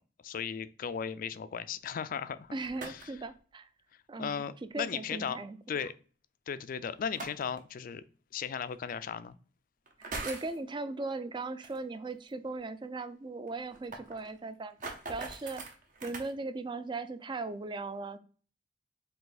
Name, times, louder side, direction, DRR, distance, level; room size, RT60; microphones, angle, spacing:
voice 1, 0.2-2.5 2.9-3.0 4.2-5.4 5.7-5.9 6.5-8.0 8.3-9.3, left 7 dB, 50° left, 0.3 m, -36 dB
sound 1, 2.4-3.3 4.9-5.0 7.0-7.6 8.7-8.8 9.9-10.6 11.6-11.8 12.1-12.2 12.5-12.6 12.8-12.9 13.5-16.3, right 3 dB, 45° right, 0.9 m, -42 dB
voice 2, 2.5-3.7 4.1-4.4 4.7-5.6 5.8-5.9 10.0-14.8 15.1-15.6 16.0-18.2, right 3 dB, 25° right, 0.4 m, -38 dB
4.9 x 2.7 x 3.9 m
head